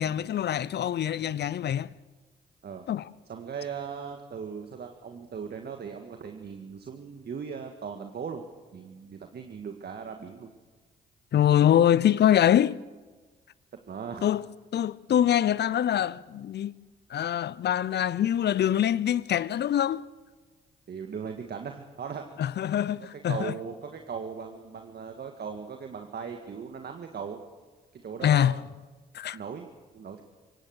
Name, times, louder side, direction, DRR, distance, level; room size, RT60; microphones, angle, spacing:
voice 1, 0.0-1.9 2.9-3.1 11.3-12.8 14.2-14.4 14.7-16.7 17.1-20.0 22.4-23.5 28.2-28.6 29.1-29.4, left 10 dB, 55° left, 0.7 m, -24 dB
voice 2, 3.3-8.5 8.7-10.5 13.9-14.3 20.9-22.3 23.3-27.4 27.9-28.6 29.3-29.7 29.9-30.2, right 6 dB, 55° right, 1.8 m, -38 dB
24.0 x 18.0 x 6.5 m
hypercardioid pair, 45°, 20 cm